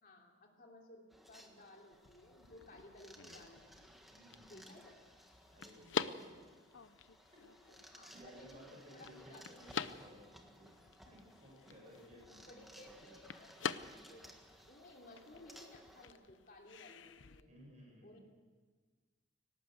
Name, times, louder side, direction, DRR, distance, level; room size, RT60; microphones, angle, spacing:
voice 1, 0.0-3.9 4.4-5.0 7.9-9.4 11.0-11.1 11.6-11.7 12.1-13.7 14.1-14.3 14.7-17.6 18.0-18.2, left 1 dB, 50° left, 1 dB, 3.1 m, -58 dB
sound 1, 1.1-16.1, equal, ahead, 1.6 m, -60 dB
sound 2, 1.9-17.4, left 5 dB, 85° left, 0.8 m, -47 dB
voice 2, 4.1-4.7 5.5-6.5 7.3-10.8 11.1-13.2 17.5-18.2, equal, 40° right, -2 dB, 7.3 m, -59 dB
18.5 x 18.5 x 8.0 m, 1.4 s
head